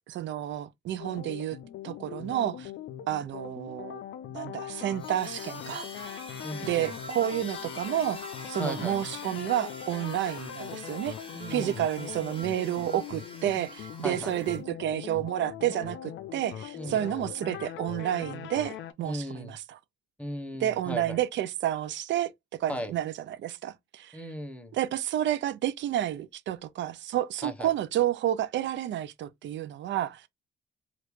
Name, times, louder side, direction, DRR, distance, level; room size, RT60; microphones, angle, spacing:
voice 1, 0.1-1.6 1.8-2.7 3.1-4.0 4.3-5.9 6.6-8.2 8.5-11.1 11.5-19.8 20.6-22.3 22.6-24.2 24.7-30.2, right 12 dB, 65° right, 0.5 m, -30 dB
sound 1, 1.0-18.9, left 10 dB, 75° left, 0.5 m, -41 dB
sound 2, 5.0-14.6, left 1 dB, 25° left, 1.2 m, -45 dB
voice 2, 6.4-6.9 8.6-9.0 11.3-11.9 14.0-14.4 16.8-17.3 19.0-19.6 20.2-21.2 22.7-22.9 24.1-24.7 27.4-27.7, equal, 5° left, 0.8 m, -37 dB
3.2 x 2.5 x 3.0 m
cardioid pair, 90°, 20 cm